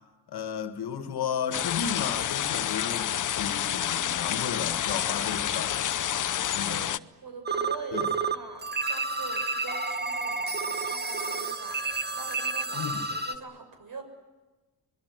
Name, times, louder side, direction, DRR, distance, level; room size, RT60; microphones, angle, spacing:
voice 1, 0.3-5.9 6.5-6.9 7.9-8.1 12.7-13.0, left 7 dB, 70° left, 2.1 m, -34 dB
sound 1, 1.5-7.0, left 10 dB, 50° left, 0.8 m, -29 dB
voice 2, 6.5-6.9 7.2-11.8 12.1-14.0, right 4 dB, 55° right, 7.0 m, -43 dB
sound 2, 7.5-8.3 8.6-13.4, right 4 dB, 25° right, 1.8 m, -30 dB
25.5 x 21.0 x 9.8 m
cardioid pair, 65°, 40 cm